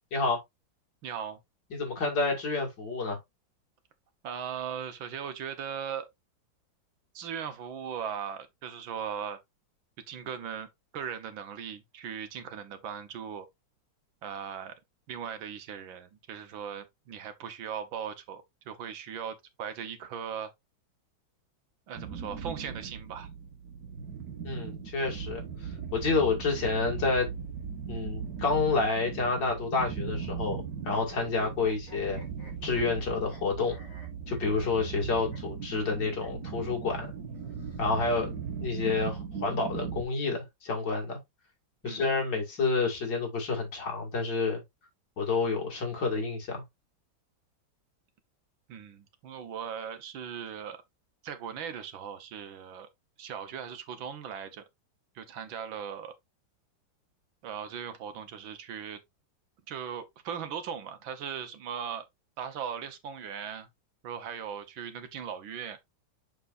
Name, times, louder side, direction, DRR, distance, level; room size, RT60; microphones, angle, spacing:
voice 1, 1.0-1.4 4.2-6.1 7.1-9.4 10.1-10.7 10.9-13.5 14.2-14.8 15.1-20.5 21.9-23.3 41.8-42.0 48.7-50.8 51.2-52.9 53.2-54.6 55.2-56.1 57.4-59.0 59.7-62.1 62.4-63.7 64.0-65.8, right 8 dB, 90° right, 1.9 m, -38 dB
voice 2, 1.7-3.2 24.4-27.3 27.9-32.2 32.6-33.8 34.3-37.1 37.8-38.3 38.6-41.2 41.8-44.6 45.2-46.6, left 4 dB, 65° left, 3.0 m, -29 dB
sound 1, 21.9-40.0, right 6 dB, 50° right, 1.9 m, -38 dB
sound 2, 30.8-33.4 33.7-35.0 35.3-35.4 35.7-35.8 36.2-36.3 37.3-38.3, equal, 40° left, 4.0 m, -51 dB
6.6 x 6.0 x 2.6 m
omnidirectional pair, 2.1 m